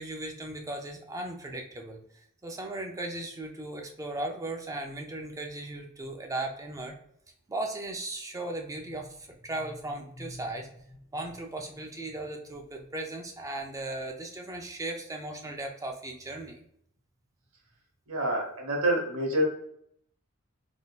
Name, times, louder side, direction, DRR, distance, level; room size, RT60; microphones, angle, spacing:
voice 1, 0.0-2.0 2.4-7.0 7.5-16.6, right 2 dB, 15° right, 2 dB, 0.4 m, -37 dB
voice 2, 18.1-19.4, right 1 dB, 70° right, 0 dB, 1.0 m, -27 dB
3.6 x 2.5 x 2.4 m, 0.69 s
head